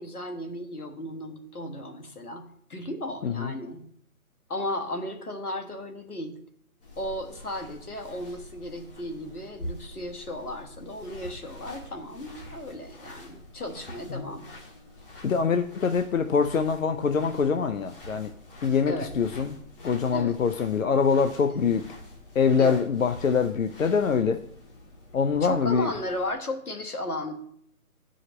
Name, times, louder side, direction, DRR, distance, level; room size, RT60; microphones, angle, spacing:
voice 1, 0.0-3.9 4.5-6.4 7.0-14.5 18.9-19.1 20.1-20.4 21.5-21.6 22.6-22.8 25.3-27.3, left 1 dB, 80° left, 3 dB, 1.5 m, -35 dB
sound 1, 6.8-26.3, left 1 dB, 40° left, 1.5 m, -46 dB
voice 2, 15.2-18.3 18.6-19.6 19.8-21.9 22.3-24.4 25.1-25.9, left 6 dB, 60° left, 8 dB, 0.6 m, -24 dB
9.3 x 5.0 x 3.0 m, 0.69 s
figure-of-eight pair, 155°, 44 cm